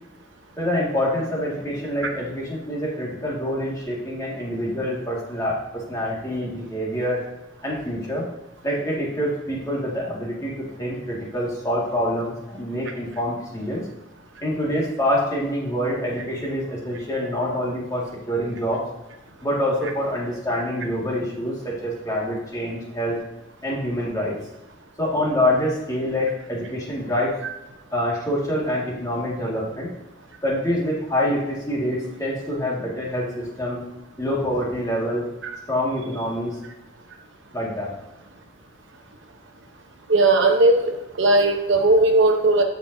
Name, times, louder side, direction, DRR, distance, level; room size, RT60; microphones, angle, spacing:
voice 1, 0.6-7.2 7.6-8.3 8.6-13.8 14.4-18.8 19.4-23.2 23.6-24.4 25.0-27.4 27.9-29.9 30.4-33.8 34.2-35.2 35.7-36.6 37.5-37.9, equal, 15° left, -4 dB, 2.0 m, -26 dB
voice 2, 40.1-40.9 41.2-42.6, right 2 dB, 60° right, 3 dB, 0.9 m, -17 dB
14.5 x 5.2 x 2.7 m, 1.0 s
head